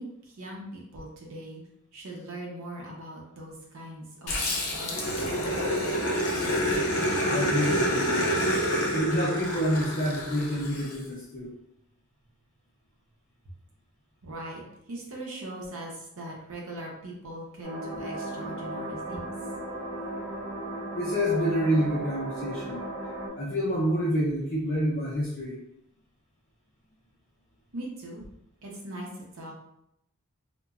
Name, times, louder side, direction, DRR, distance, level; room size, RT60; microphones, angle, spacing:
voice 1, 0.0-1.6 1.9-5.9 14.2-14.6 14.9-19.3 27.7-28.3 28.6-29.5, right 1 dB, 70° right, -1 dB, 0.6 m, -40 dB
Growling, 4.3-11.0, equal, 85° left, 0.7 m, -27 dB
voice 2, 7.3-8.3 8.9-11.5 20.9-22.8 23.4-25.6, equal, 40° left, -8 dB, 0.6 m, -28 dB
sound 1, 17.6-23.3, right 1 dB, 5° left, 0.7 m, -36 dB
2.9 x 2.2 x 2.3 m, 0.79 s
head